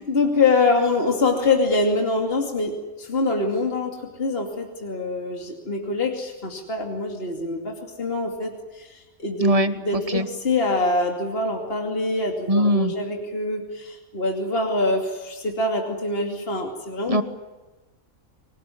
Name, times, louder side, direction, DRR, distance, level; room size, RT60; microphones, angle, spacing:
voice 1, 0.1-9.6 9.8-17.2, left 3 dB, 40° left, 2 dB, 2.8 m, -24 dB
voice 2, 9.4-10.3 12.5-12.9 17.1-17.2, equal, 25° right, 11 dB, 1.3 m, -21 dB
26.0 x 19.0 x 9.9 m, 1.1 s
omnidirectional pair, 1.5 m